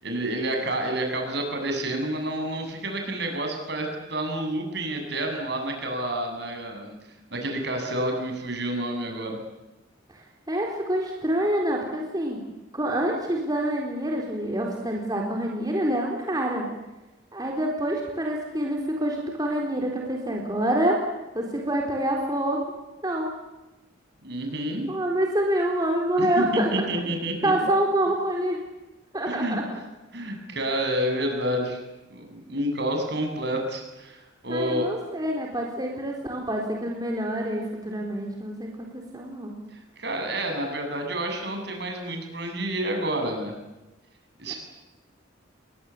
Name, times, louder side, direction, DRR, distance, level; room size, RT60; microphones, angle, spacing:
voice 1, 0.0-6.9 7.3-9.4 24.2-24.9 26.2-27.5 29.3-29.6 30.1-31.8 32.1-34.9 40.0-43.5 44.4-44.6, right 1 dB, 60° right, 4 dB, 7.6 m, -29 dB
voice 2, 10.1-12.4 12.7-16.7 17.3-21.0 21.3-22.6 23.0-23.3 24.9-26.7 27.4-28.6 29.1-29.6 34.5-39.6 44.5-44.6, right 1 dB, 20° right, 0 dB, 4.0 m, -26 dB
30.0 x 22.5 x 8.5 m, 1.0 s
head